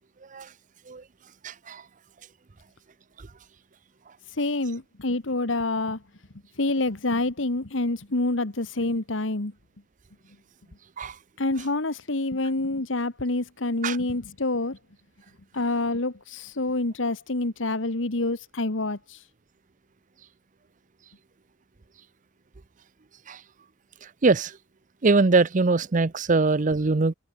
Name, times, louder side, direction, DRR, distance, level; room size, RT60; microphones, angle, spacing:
voice 1, 1.4-1.8 11.0-11.1 13.8-14.0 23.3-23.4 24.2-24.5 25.0-27.1, right 3 dB, 45° right, 0.6 m, -22 dB
voice 2, 4.3-6.0 6.6-9.5 11.4-14.8 15.5-19.2, left 2 dB, 90° left, 1.7 m, -27 dB
head